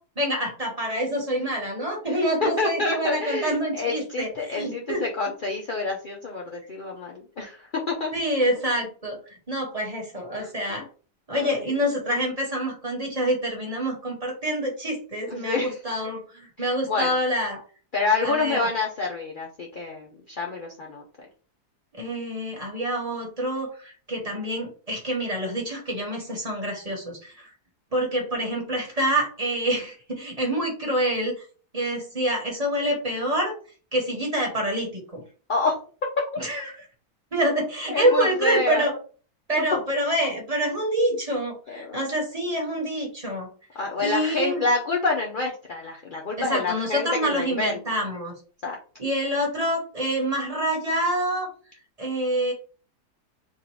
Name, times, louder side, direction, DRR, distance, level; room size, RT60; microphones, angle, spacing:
voice 1, 0.2-5.0 8.1-9.2 9.5-10.8 11.3-17.6 18.2-18.7 22.0-27.5 27.9-31.4 31.7-33.5 33.9-35.2 36.4-36.8 37.3-39.0 39.5-43.5 44.0-44.6 46.4-48.4 49.0-51.5 52.0-52.5, right 1 dB, 25° right, -1 dB, 1.3 m, -26 dB
voice 2, 2.1-8.1 10.4-10.8 11.3-11.7 15.3-15.8 16.6-17.1 17.9-21.0 35.5-36.1 37.9-38.8 41.7-42.0 43.7-47.8 48.6-48.8, left 3 dB, 70° left, -1 dB, 0.5 m, -28 dB
3.6 x 2.5 x 4.6 m, 0.40 s
omnidirectional pair, 1.8 m